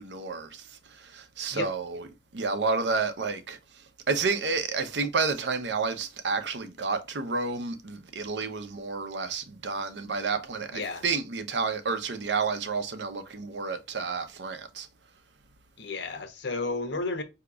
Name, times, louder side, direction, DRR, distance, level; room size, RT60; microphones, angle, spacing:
voice 1, 0.0-2.0 2.3-3.6 4.1-14.9, right 4 dB, 80° right, 0.7 m, -30 dB
voice 2, 10.7-11.0 15.8-17.2, left 3 dB, 85° left, 0.8 m, -32 dB
4.8 x 2.8 x 2.3 m
head